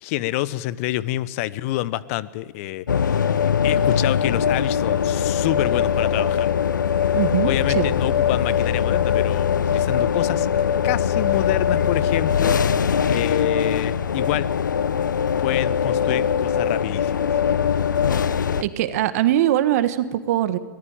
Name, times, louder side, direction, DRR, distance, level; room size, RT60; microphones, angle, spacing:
voice 1, 0.0-6.5 7.4-10.5 10.8-14.5 15.4-17.4, left 16 dB, 45° left, 17 dB, 1.1 m, -27 dB
sound 1, 2.9-18.6, left 8 dB, 75° left, 0.9 m, -21 dB
voice 2, 7.1-7.9 18.6-20.6, right 12 dB, 50° right, 11 dB, 1.7 m, -21 dB
22.5 x 19.0 x 9.1 m, 1.4 s
figure-of-eight pair, 110°, 10 cm